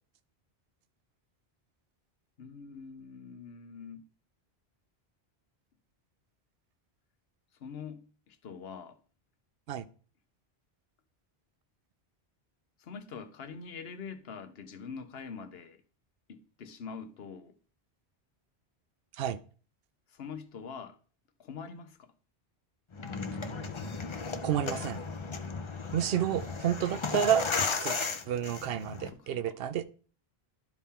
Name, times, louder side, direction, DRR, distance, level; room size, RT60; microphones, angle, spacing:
voice 1, 2.4-4.1 7.6-9.0 12.8-15.8 16.3-17.5 20.1-21.0 21.4-22.1 29.1-29.6, left 6 dB, 70° left, 1.1 m, -44 dB
sound 1, 22.9-29.1, left 4 dB, 35° left, 0.6 m, -35 dB
voice 2, 24.4-25.0 25.9-27.4 27.8-28.0 28.3-29.8, right 10 dB, 70° right, 0.8 m, -30 dB
12.0 x 4.3 x 3.6 m
omnidirectional pair, 1.1 m